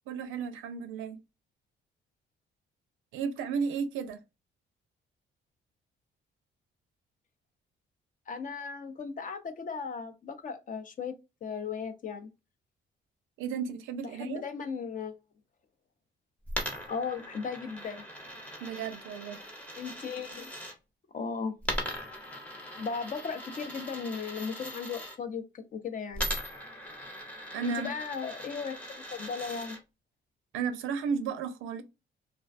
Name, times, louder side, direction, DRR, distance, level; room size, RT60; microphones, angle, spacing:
voice 1, 0.1-1.2 3.1-4.2 13.4-14.4 18.6-19.4 27.5-27.9 30.5-31.8, right 6 dB, 90° right, 0.5 m, -33 dB
voice 2, 8.3-11.1 11.4-12.3 14.2-15.2 16.9-18.0 19.8-20.5 21.1-21.5 22.8-26.3 27.6-29.8, left 5 dB, 40° left, 0.5 m, -36 dB
Coin (dropping), 16.5-20.7 21.6-25.2 26.1-29.8, equal, 5° left, 0.7 m, -39 dB
2.4 x 2.2 x 2.4 m
cardioid pair, 90°, 20 cm